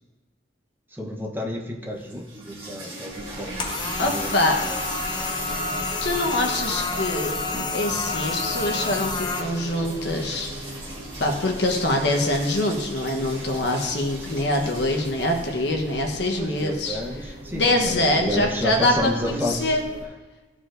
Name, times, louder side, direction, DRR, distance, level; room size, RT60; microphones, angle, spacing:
voice 1, 0.9-4.3 4.6-4.8 16.4-19.8, left 1 dB, 10° right, -1 dB, 0.8 m, -31 dB
sound 1, 1.9-17.9, right 2 dB, 30° right, 1.8 m, -40 dB
sound 2, 3.1-20.1, equal, 55° right, 1.2 m, -39 dB
sound 3, 3.6-9.4, left 3 dB, 25° left, 0.7 m, -29 dB
voice 2, 4.0-4.6 6.0-7.3 7.7-10.8 11.2-17.0 17.5-19.9, left 1 dB, 75° left, 1 dB, 1.0 m, -24 dB
13.5 x 4.7 x 2.5 m, 1.3 s
head